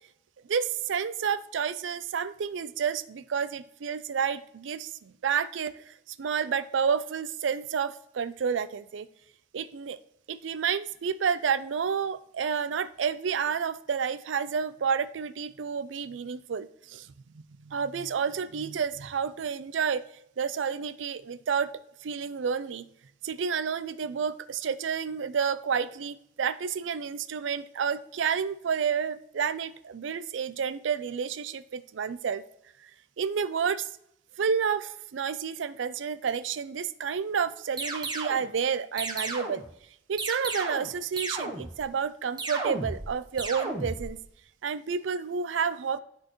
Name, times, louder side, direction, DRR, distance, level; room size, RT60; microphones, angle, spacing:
voice 1, 0.5-9.1 9.5-10.0 10.3-20.0 20.4-21.7 22.0-22.8 23.2-32.4 33.2-33.9 34.4-39.6 40.1-44.2 44.6-46.0, right 6 dB, 90° right, 15 dB, 0.4 m, -30 dB
sound 1, 37.8-38.5 39.0-39.7 40.2-40.9 41.2-41.8 42.4-43.1 43.4-44.1, right 2 dB, 25° right, 0.9 m, -33 dB
12.5 x 4.3 x 3.1 m, 0.74 s
head